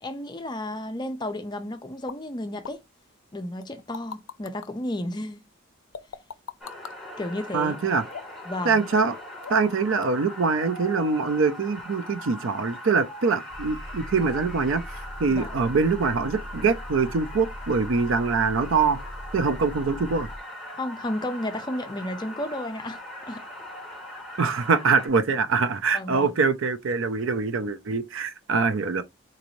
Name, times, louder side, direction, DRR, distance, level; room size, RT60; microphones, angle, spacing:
voice 1, 0.0-2.8 3.3-5.4 7.2-7.8 8.5-8.8 15.3-15.6 20.7-23.0 23.3-23.4 25.9-26.3, left 1 dB, 20° left, 0.4 m, -32 dB
sound 1, 2.1-2.2 2.6-2.8 3.6-4.7 5.9-7.0 8.1-8.5 8.9-9.2 9.4-9.7 10.0-10.1, left 6 dB, 75° left, 0.5 m, -39 dB
sound 2, 6.6-25.1, left 1 dB, ahead, 1.1 m, -40 dB
voice 2, 7.5-8.0 8.6-9.2 9.5-14.8 15.2-19.0 19.3-20.3 24.4-29.0, right 4 dB, 70° right, 0.5 m, -24 dB
Engine, 13.5-20.4, equal, 25° right, 1.0 m, -40 dB
3.9 x 2.6 x 3.0 m
head